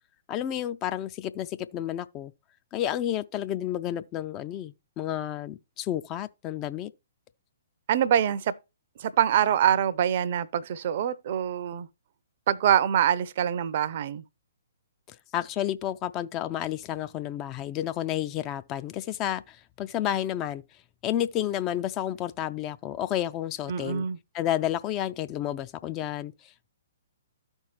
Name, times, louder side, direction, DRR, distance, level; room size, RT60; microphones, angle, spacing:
voice 1, 0.3-2.3 2.7-6.9 15.1-20.6 21.0-24.1 24.3-26.7, left 11 dB, 25° left, 0.3 m, -31 dB
voice 2, 7.9-8.5 9.0-11.9 12.5-14.2 23.7-24.2, right 9 dB, 45° right, 0.5 m, -24 dB
13.0 x 4.5 x 3.1 m
figure-of-eight pair, 120°, 0 cm